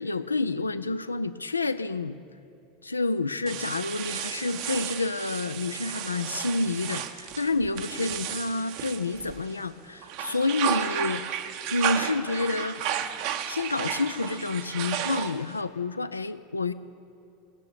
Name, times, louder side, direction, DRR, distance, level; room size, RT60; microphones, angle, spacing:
voice 1, 0.0-2.2 2.8-11.2 11.7-12.9 13.5-16.7, left 3 dB, 80° left, 13 dB, 0.4 m, -29 dB
sound 1, 3.5-9.6 10.0-15.6, right 10 dB, 50° right, 0.8 m, -33 dB
19.0 x 6.7 x 8.7 m, 2.8 s
figure-of-eight pair, 80°, 0 cm